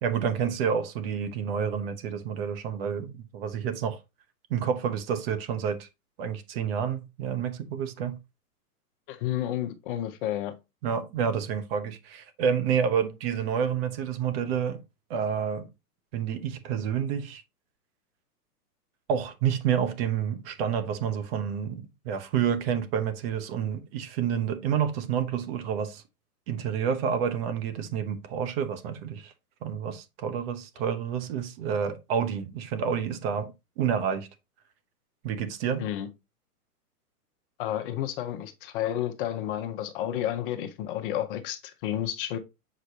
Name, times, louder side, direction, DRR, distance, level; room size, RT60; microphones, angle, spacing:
voice 1, 0.0-4.0 4.5-5.9 6.2-8.2 10.8-14.8 15.1-15.7 16.1-17.4 19.1-26.0 26.5-29.3 29.6-34.3 35.2-35.8, right 7 dB, 40° right, 1.0 m, -29 dB
voice 2, 9.1-10.5 35.8-36.1 37.6-42.4, left 11 dB, 35° left, 0.8 m, -31 dB
7.5 x 5.0 x 2.8 m
hypercardioid pair, 135°, 47 cm